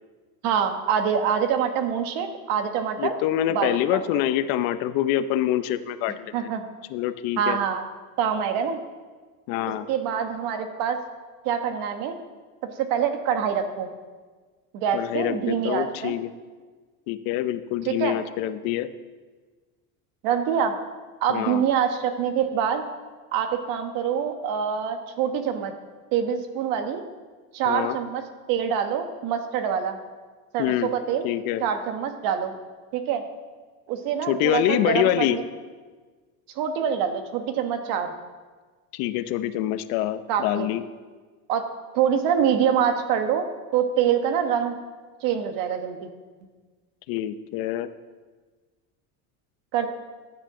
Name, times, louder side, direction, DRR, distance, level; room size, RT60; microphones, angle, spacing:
voice 1, 0.4-3.1 3.5-4.0 6.3-6.6 7.4-7.8 8.2-8.8 9.9-11.0 11.4-12.1 12.6-13.9 14.7-16.1 17.9-18.1 20.2-20.7 21.2-22.8 23.3-25.7 26.1-27.0 27.5-28.2 28.5-30.0 30.5-31.3 31.6-32.5 32.9-33.2 33.9-35.4 36.5-38.1 40.3-40.7 41.5-41.6 41.9-43.5 43.7-44.8 45.2-46.1 49.7-49.9, right 8 dB, 60° right, 7 dB, 1.4 m, -25 dB
voice 2, 3.0-6.5 6.9-7.6 9.5-9.9 14.9-16.3 17.1-18.9 21.3-21.6 27.7-28.0 30.6-30.9 31.2-31.6 34.3-35.4 38.9-40.8 47.1-47.9, left 12 dB, 60° left, 12 dB, 0.8 m, -25 dB
15.0 x 9.9 x 3.8 m, 1.4 s
cardioid pair, 150°, 38 cm